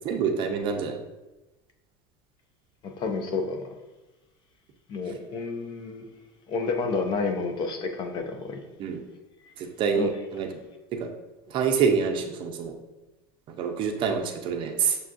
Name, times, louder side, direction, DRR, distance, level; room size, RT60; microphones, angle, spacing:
voice 1, 0.0-1.0 8.8-9.0 9.6-10.5 10.9-11.1 11.5-12.7 13.6-15.0, right 6 dB, 40° right, 4 dB, 0.5 m, -26 dB
voice 2, 2.8-3.7 4.9-6.1 6.5-8.6 9.4-9.5 9.9-10.1, left 4 dB, 35° left, 5 dB, 0.5 m, -30 dB
6.5 x 2.3 x 2.5 m, 1.1 s
supercardioid pair, 140°, 13 cm